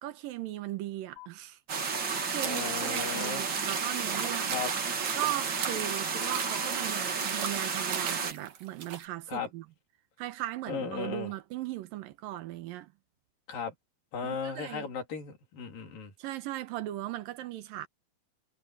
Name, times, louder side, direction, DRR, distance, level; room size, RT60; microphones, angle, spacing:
voice 1, 0.0-1.6 2.0-4.6 5.1-9.7 10.2-12.9 14.2-14.9 16.2-17.9, right 15 dB, 90° right, 2.8 m, -38 dB
sound 1, 1.2-1.3 2.2-2.3 3.2-3.3 4.2-4.3 5.1-5.3 6.1-6.7, left 21 dB, 60° left, 9.4 m, -46 dB
sound 2, 1.7-8.3, right 5 dB, 40° right, 2.3 m, -32 dB
sound 3, 2.3-9.1, right 8 dB, 70° right, 3.4 m, -40 dB
voice 2, 2.4-3.4 4.5-4.7 9.3-9.5 10.7-11.3 13.5-13.7 14.1-16.1, left 6 dB, 85° left, 5.1 m, -36 dB
omnidirectional pair, 3.9 m